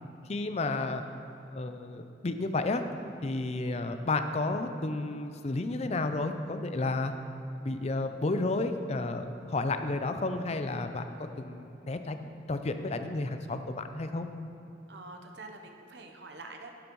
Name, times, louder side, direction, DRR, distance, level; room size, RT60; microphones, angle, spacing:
voice 1, 0.3-1.0 1.5-2.8 3.2-7.1 7.6-14.3, left 2 dB, 35° left, 8 dB, 0.5 m, -32 dB
voice 2, 14.9-16.7, right 3 dB, 70° right, 4 dB, 0.9 m, -46 dB
12.0 x 8.7 x 3.1 m, 2.8 s
head